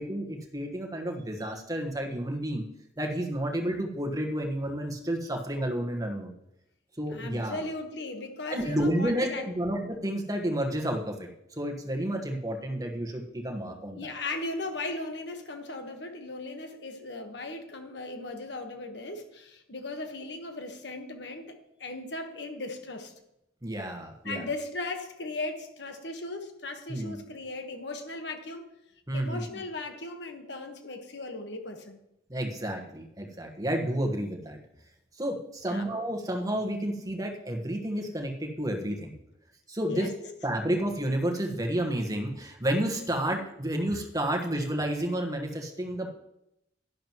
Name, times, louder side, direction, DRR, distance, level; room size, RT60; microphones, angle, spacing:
voice 1, 0.0-2.6 3.0-6.3 7.0-7.6 8.5-11.3 11.6-14.1 23.6-24.5 26.9-27.2 29.1-29.4 32.3-34.6 35.2-39.2 39.7-40.1 40.4-46.1, right 1 dB, 20° right, 2 dB, 1.3 m, -31 dB
voice 2, 7.1-9.5 13.9-21.5 21.8-23.1 24.2-28.6 29.1-32.0 35.7-35.9 39.9-40.1 43.2-43.4, left 2 dB, 65° left, 6 dB, 1.3 m, -37 dB
11.5 x 10.5 x 3.1 m, 0.82 s
head